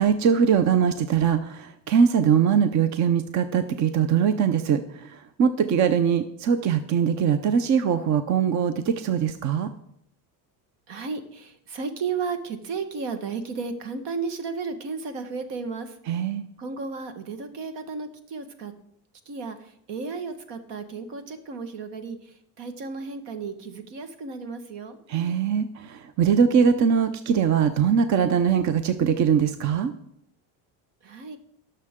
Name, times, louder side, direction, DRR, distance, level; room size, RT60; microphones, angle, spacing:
voice 1, 0.0-9.7 16.1-16.4 25.1-29.9, right 7 dB, 40° right, 11 dB, 0.7 m, -22 dB
voice 2, 10.9-16.0 16.6-18.7 19.2-25.0 31.0-31.4, right 4 dB, 70° right, 8 dB, 1.6 m, -34 dB
18.5 x 6.7 x 3.7 m, 0.71 s
cardioid pair, 135°, 44 cm